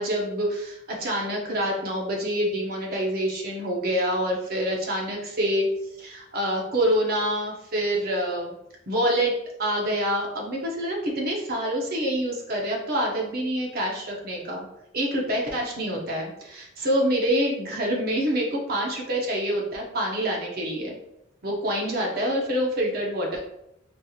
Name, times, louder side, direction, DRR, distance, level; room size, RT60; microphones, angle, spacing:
voice 1, 0.0-5.7 6.0-8.5 8.9-14.6 14.9-21.0 21.4-23.4, equal, 50° right, -1 dB, 0.9 m, -26 dB
4.3 x 2.9 x 2.4 m, 0.81 s
head